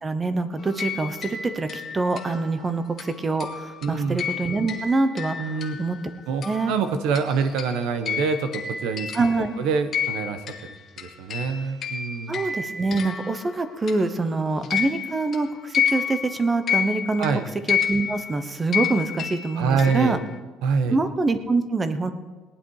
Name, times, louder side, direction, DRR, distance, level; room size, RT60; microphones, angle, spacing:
voice 1, 0.0-6.0 6.4-6.7 9.1-9.5 12.3-17.3 17.7-20.2 20.9-22.1, right 3 dB, 20° right, 10 dB, 0.9 m, -25 dB
sound 1, 0.6-6.1 6.4-14.3 14.6-20.3, left 8 dB, 40° left, 1.7 m, -31 dB
voice 2, 3.8-4.2 5.4-5.8 6.3-10.4 11.0-12.4 17.2-17.5 19.6-20.2 20.6-21.0, right 5 dB, 85° right, 9 dB, 1.2 m, -25 dB
18.5 x 10.5 x 4.8 m, 1.3 s
cardioid pair, 160°, 0 cm